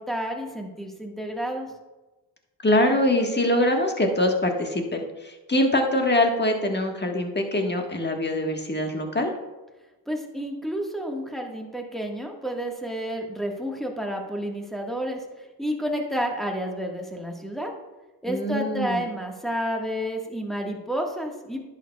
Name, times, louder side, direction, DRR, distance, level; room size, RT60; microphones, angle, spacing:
voice 1, 0.0-1.7 10.1-15.2 15.6-17.7 18.2-21.6, equal, ahead, 0 dB, 1.5 m, -30 dB
voice 2, 2.6-9.3 18.3-19.0, left 1 dB, 25° left, 3 dB, 1.5 m, -23 dB
10.5 x 6.8 x 2.3 m, 1.1 s
supercardioid pair, 50°, 43 cm